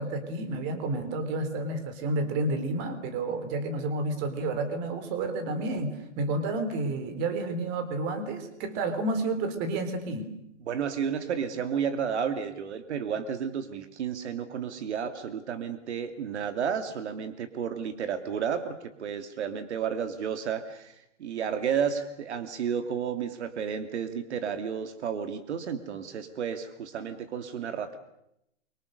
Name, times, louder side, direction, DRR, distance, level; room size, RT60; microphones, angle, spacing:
voice 1, 0.0-10.3, right 2 dB, 30° right, 9 dB, 3.8 m, -30 dB
voice 2, 10.7-28.0, right 7 dB, 65° right, 8 dB, 2.6 m, -32 dB
29.0 x 24.5 x 6.7 m, 0.81 s
hypercardioid pair, 155°, 36 cm